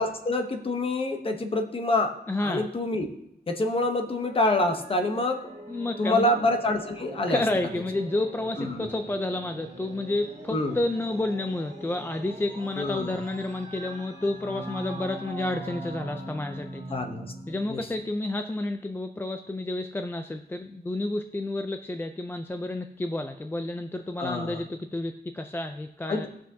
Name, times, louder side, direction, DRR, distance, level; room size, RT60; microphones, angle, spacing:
voice 1, 0.0-2.1 2.4-3.1 3.5-5.4 6.0-7.4 8.6-8.8 10.5-10.8 12.8-13.2 16.9-17.3 17.7-17.8 24.2-24.6 26.1-26.3, left 2 dB, 35° left, 5 dB, 1.0 m, -26 dB
voice 2, 2.3-2.7 5.7-6.3 7.3-17.0 17.5-26.3, left 2 dB, 15° left, 6 dB, 0.4 m, -30 dB
sound 1, 4.1-17.7, right 1 dB, 40° right, 2.0 m, -42 dB
18.5 x 6.2 x 2.8 m, 0.80 s
wide cardioid pair, 140°, 17 cm